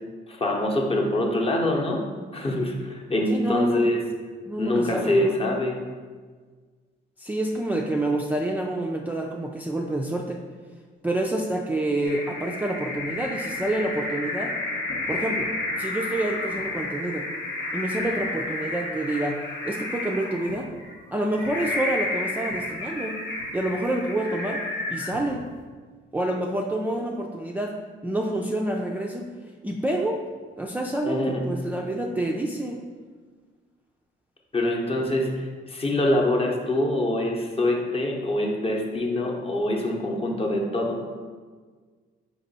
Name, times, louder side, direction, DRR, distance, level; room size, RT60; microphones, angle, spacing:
voice 1, 0.3-2.0 2.3-4.0 4.6-5.8 31.0-31.4 34.5-41.0, left 1 dB, 30° left, 0 dB, 0.8 m, -24 dB
voice 2, 3.3-4.0 4.5-5.3 7.2-10.4 11.0-14.5 15.1-15.5 15.8-17.3 17.7-20.7 21.1-23.2 23.5-24.6 24.9-25.4 26.1-27.8 28.0-29.3 29.6-30.2 30.6-32.8, right 1 dB, 10° right, -1 dB, 0.3 m, -28 dB
sound 1, 12.0-25.6, left 2 dB, 65° left, 0.9 m, -31 dB
4.3 x 2.9 x 4.1 m, 1.5 s
cardioid pair, 90°, 20 cm